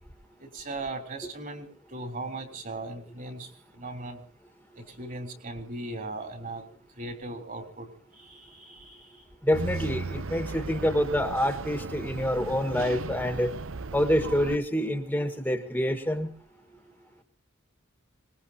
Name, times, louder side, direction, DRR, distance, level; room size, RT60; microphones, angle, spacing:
voice 1, 0.5-3.5 3.7-4.2 4.8-6.7 7.0-7.9 8.2-9.1, right 2 dB, 40° right, 7 dB, 3.6 m, -38 dB
voice 2, 9.4-13.5 13.9-16.3, equal, 10° left, 7 dB, 1.6 m, -27 dB
sound 1, 9.5-14.6, right 4 dB, 80° right, 0.8 m, -36 dB
25.0 x 20.5 x 2.8 m, 0.42 s
head